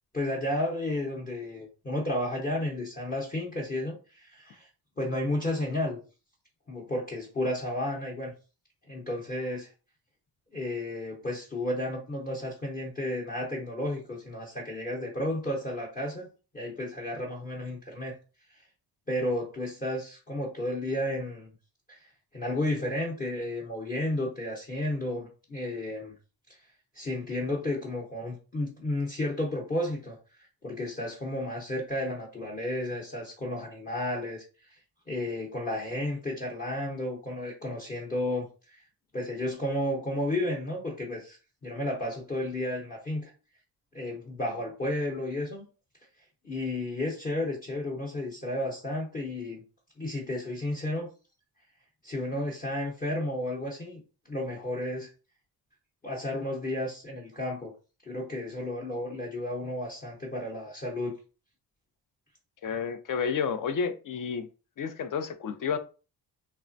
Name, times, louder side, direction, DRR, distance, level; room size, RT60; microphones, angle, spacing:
voice 1, 0.1-4.7 5.0-6.0 6.7-8.3 8.9-9.7 10.5-16.3 16.5-18.1 19.1-21.5 21.9-26.1 26.9-30.2 30.6-34.4 35.1-38.8 39.1-41.4 41.6-43.3 43.9-45.6 46.4-49.6 50.0-51.1 52.0-54.0 54.3-55.1 56.0-57.7 58.1-61.2, left 1 dB, 20° left, 0.8 m, -32 dB
voice 2, 62.6-64.5 64.8-65.8, left 6 dB, 50° left, 0.5 m, -30 dB
3.3 x 2.1 x 2.5 m
cardioid pair, 80°, 41 cm